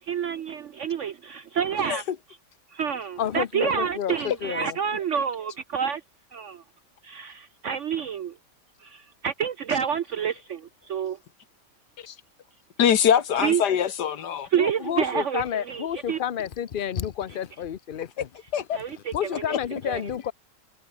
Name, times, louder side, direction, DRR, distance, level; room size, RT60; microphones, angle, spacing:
voice 1, 0.0-2.0 2.7-6.0 6.3-6.6 7.0-8.4 8.8-11.2 13.4-13.6 14.5-16.2 18.7-19.6 19.9-20.0, right 7 dB, 65° right, 0.7 m, -28 dB
voice 2, 3.2-4.8 14.6-18.3 19.1-20.3, left 9 dB, 90° left, 0.4 m, -30 dB
voice 3, 12.8-14.5 18.5-18.8 19.5-19.6, left 9 dB, 70° left, 1.8 m, -23 dB
omnidirectional pair, 1.9 m